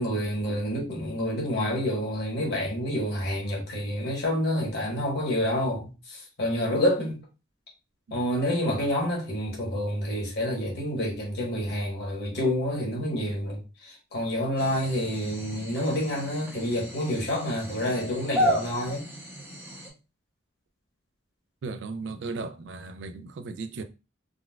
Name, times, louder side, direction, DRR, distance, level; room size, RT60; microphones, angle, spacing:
voice 1, 0.0-7.2 8.1-19.1, left 1 dB, 55° left, 1.2 m, -28 dB
sound 1, 14.6-19.9, equal, 10° right, 0.7 m, -33 dB
voice 2, 21.6-23.8, right 3 dB, 60° right, 0.3 m, -36 dB
3.8 x 2.3 x 2.3 m
head